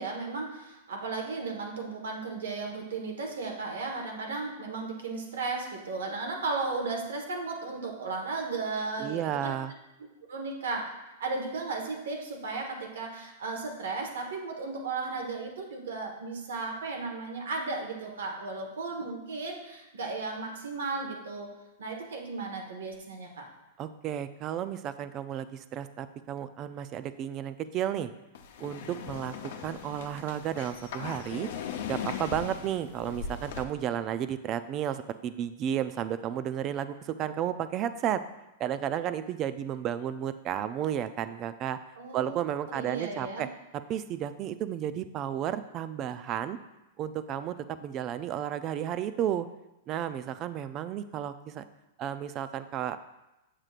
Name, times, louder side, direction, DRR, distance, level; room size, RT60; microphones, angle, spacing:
voice 1, 0.0-9.5 10.3-10.9 11.2-21.5 21.8-23.5 41.9-42.4 42.7-43.4, right 3 dB, 85° right, 1 dB, 1.4 m, -35 dB
voice 2, 9.0-9.7 23.8-28.1 28.6-31.5 31.9-38.2 38.6-41.8 42.1-43.5 43.9-46.6 47.0-49.5 49.9-51.6 52.0-53.0, right 10 dB, 35° right, 12 dB, 0.4 m, -33 dB
sound 1, 28.3-33.6, left 7 dB, 70° left, 0.6 m, -39 dB
7.4 x 6.5 x 2.5 m, 0.97 s
hypercardioid pair, 130°, 0 cm